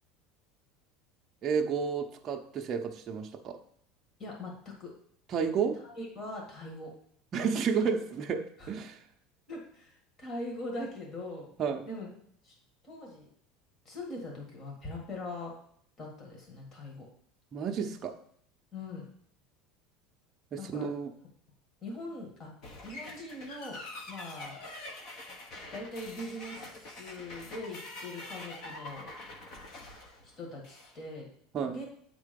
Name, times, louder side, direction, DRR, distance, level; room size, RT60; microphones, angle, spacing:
voice 1, 1.4-3.6 5.3-5.8 7.3-9.0 11.6-11.9 17.5-18.2 20.5-21.1 31.5-31.8, right 6 dB, 30° right, 3 dB, 0.6 m, -31 dB
voice 2, 4.2-4.9 6.0-6.9 8.6-8.7 9.5-11.5 11.8-12.1 12.4-12.5 12.8-13.3 13.8-15.5 16.0-17.1 18.7-19.1 20.6-20.9 21.8-22.5 22.8-23.8 24.1-24.6 25.7-29.1 30.2-31.3 31.7-31.8, left 2 dB, 30° left, -1 dB, 1.7 m, -41 dB
sound 1, 22.6-31.0, left 2 dB, 45° left, 1.1 m, -45 dB
8.3 x 3.7 x 5.2 m, 0.65 s
cardioid pair, 155°, 0 cm